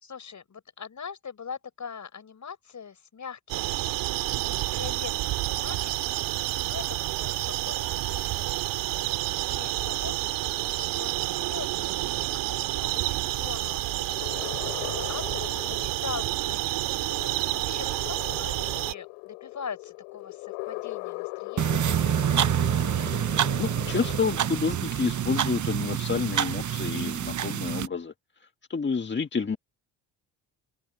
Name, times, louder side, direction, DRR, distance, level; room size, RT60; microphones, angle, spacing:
voice 1, 0.0-6.1 6.4-7.3 7.6-8.8 9.5-17.3 17.6-22.5, left 6 dB, 45° left, 5.6 m, -42 dB
sound 1, 3.5-18.9, right 17 dB, 80° right, 3.4 m, -29 dB
sound 2, 7.1-24.5, left 31 dB, 90° left, 5.2 m, -41 dB
sound 3, 21.6-27.9, right 10 dB, 45° right, 1.1 m, -27 dB
voice 2, 23.1-28.1 28.4-29.6, left 5 dB, 25° left, 1.6 m, -30 dB
supercardioid pair, 65°, 42 cm